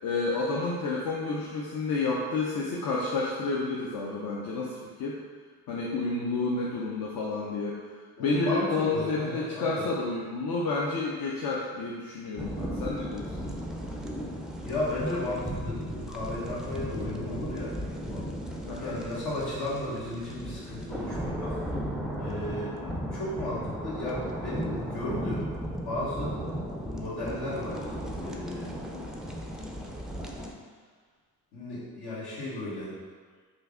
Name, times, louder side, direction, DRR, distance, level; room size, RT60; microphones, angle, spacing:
voice 1, 0.0-5.2 5.7-7.9 8.2-13.5 18.7-19.0 22.7-23.0 28.9-29.0, left 3 dB, 65° left, -4 dB, 0.6 m, -30 dB
voice 2, 8.2-9.8 14.6-17.7 18.1-18.2 18.8-21.8 22.2-22.7 23.1-25.5 25.8-26.3 26.9-27.9 28.2-28.8 31.5-33.0, left 1 dB, 85° left, -7 dB, 1.3 m, -34 dB
sound 1, 12.4-30.5, equal, ahead, 0.3 m, -36 dB
3.2 x 2.5 x 3.5 m, 1.5 s
supercardioid pair, 65°, 38 cm